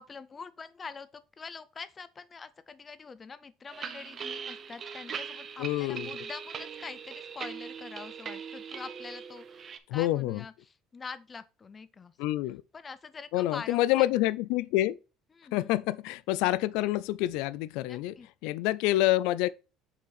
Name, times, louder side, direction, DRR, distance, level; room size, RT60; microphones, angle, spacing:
voice 1, 0.0-12.2 12.7-14.1 15.3-15.8 17.9-18.3, left 5 dB, 20° left, 0.6 m, -45 dB
sound 1, 3.7-9.8, right 6 dB, 30° right, 0.8 m, -40 dB
voice 2, 5.6-6.1 9.9-10.4 12.2-12.6 13.3-15.0 15.5-18.1 18.4-19.5, left 16 dB, 75° left, 0.3 m, -27 dB
6.7 x 5.1 x 4.1 m
cardioid pair, 155°, 0 cm